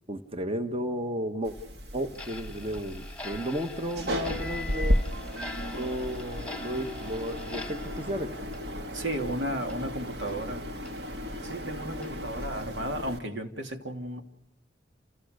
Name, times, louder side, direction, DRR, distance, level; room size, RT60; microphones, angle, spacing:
voice 1, 0.1-1.5 1.9-5.0 5.7-8.3, equal, 30° right, 7 dB, 1.3 m, -33 dB
sound 1, 1.4-13.2, equal, 60° right, 2.0 m, -34 dB
Clock, 2.1-9.3 9.6-9.8 10.3-10.4 10.9-11.0 11.4-11.5 12.0-12.1 12.6-12.8, left 2 dB, 5° left, 1.4 m, -44 dB
voice 2, 8.9-10.7 11.4-14.2, right 1 dB, 85° right, 4 dB, 2.8 m, -34 dB
29.5 x 27.5 x 6.6 m, 0.82 s
head